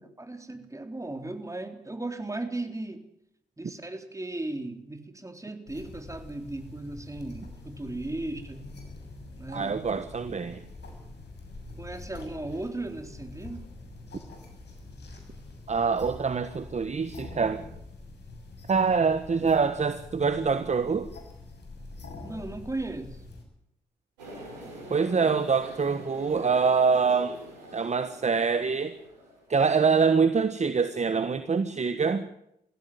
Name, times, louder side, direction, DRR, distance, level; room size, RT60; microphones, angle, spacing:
voice 1, 0.2-3.1 3.6-8.7 9.4-9.8 11.8-13.7 22.2-23.2, right 2 dB, 15° right, 7 dB, 3.7 m, -36 dB
sound 1, 5.7-23.4, left 2 dB, 55° left, 7.0 m, -45 dB
voice 2, 9.5-10.6 15.7-17.6 18.7-21.1 24.9-27.4 27.7-28.9 29.5-32.3, right 5 dB, 35° right, 11 dB, 1.4 m, -25 dB
sound 2, 24.2-29.6, right 1 dB, 90° right, 5.6 m, -44 dB
21.5 x 16.0 x 9.5 m, 0.79 s
hypercardioid pair, 45°, 21 cm